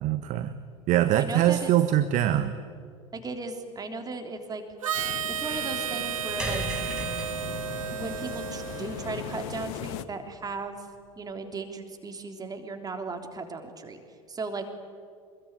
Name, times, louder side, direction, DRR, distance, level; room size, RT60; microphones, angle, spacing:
voice 1, 0.0-0.5 0.9-2.5, right 12 dB, 45° right, 11 dB, 1.3 m, -23 dB
voice 2, 1.1-1.7 3.1-4.6 5.4-6.6 7.9-10.9 11.2-14.0 14.3-14.7, right 3 dB, 20° right, 5 dB, 3.4 m, -36 dB
Harmonica, 4.8-9.6, right 9 dB, 75° right, 0.6 m, -33 dB
sound 1, 4.9-10.0, left 11 dB, 55° left, 1.3 m, -39 dB
sound 2, 6.4-10.8, equal, 5° right, 5.6 m, -39 dB
26.0 x 21.5 x 9.6 m, 2.2 s
figure-of-eight pair, 75°, 17 cm